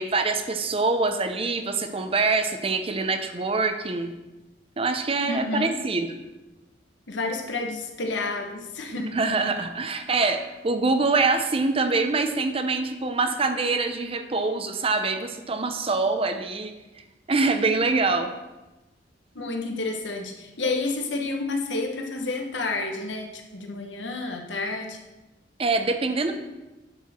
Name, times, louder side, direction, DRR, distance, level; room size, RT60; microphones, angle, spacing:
voice 1, 0.0-4.1 4.8-6.1 9.0-16.7 17.3-18.3 25.6-26.3, right 3 dB, 30° right, 8 dB, 0.7 m, -24 dB
voice 2, 5.3-5.8 7.1-9.1 19.3-25.0, left 3 dB, 85° left, 3 dB, 1.3 m, -30 dB
9.5 x 6.6 x 4.3 m, 1.1 s
head